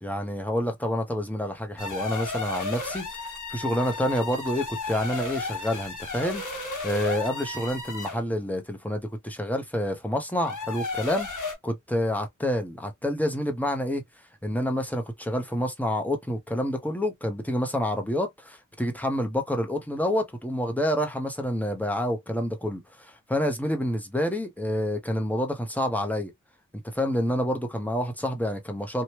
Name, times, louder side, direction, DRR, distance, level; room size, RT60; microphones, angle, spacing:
voice 1, 0.0-6.4 6.8-11.3 11.6-14.0 14.4-26.3 26.9-29.0, equal, 5° left, 0.9 m, -28 dB
sound 1, 1.8-8.3 10.3-11.5, left 3 dB, 80° left, 1.3 m, -34 dB
3.0 x 2.3 x 3.0 m
wide cardioid pair, 55°, 30 cm